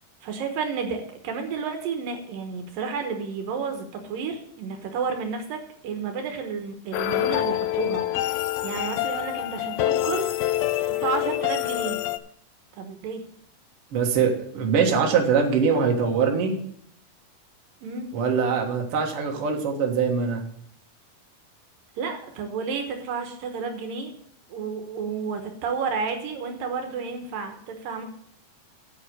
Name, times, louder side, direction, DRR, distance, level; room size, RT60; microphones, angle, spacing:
voice 1, 0.2-12.0 12.8-13.2 17.8-18.1 22.0-24.1 24.5-28.0, right 5 dB, 70° right, 5 dB, 2.7 m, -31 dB
sound 1, 6.9-12.2, left 14 dB, 85° left, 2.4 m, -26 dB
voice 2, 13.9-16.5 18.1-20.4, right 6 dB, 50° right, 1 dB, 1.9 m, -23 dB
8.2 x 7.9 x 6.5 m, 0.67 s
omnidirectional pair, 4.3 m